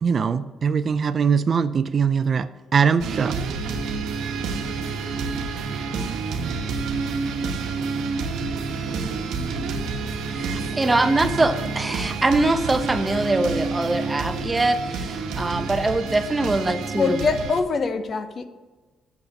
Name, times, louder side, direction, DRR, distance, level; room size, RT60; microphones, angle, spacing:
voice 1, 0.0-3.3, right 6 dB, 45° right, 0.4 m, -21 dB
sound 1, 3.0-17.6, right 4 dB, 85° right, 1.1 m, -29 dB
voice 2, 10.3-17.2, right 2 dB, 20° right, 0.9 m, -23 dB
voice 3, 16.9-18.5, left 4 dB, 45° left, 0.9 m, -23 dB
8.4 x 7.2 x 6.6 m
cardioid pair, 90°, 0 cm